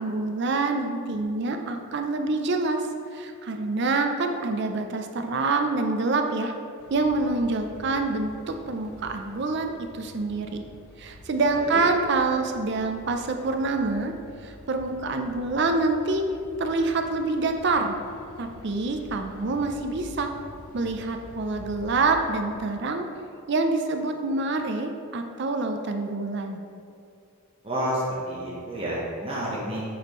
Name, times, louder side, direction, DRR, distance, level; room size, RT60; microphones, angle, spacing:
voice 1, 0.0-2.8 3.1-6.5 6.9-10.6 11.0-14.1 14.4-16.3 16.6-18.0 18.4-20.3 20.7-23.1 23.5-26.6, right 3 dB, 50° right, 5 dB, 0.4 m, -26 dB
sound 1, 6.8-22.6, left 1 dB, 80° left, 0.6 m, -47 dB
voice 2, 11.5-11.8 27.6-29.8, equal, 25° right, -7 dB, 0.9 m, -30 dB
8.2 x 4.3 x 3.0 m, 2.5 s
head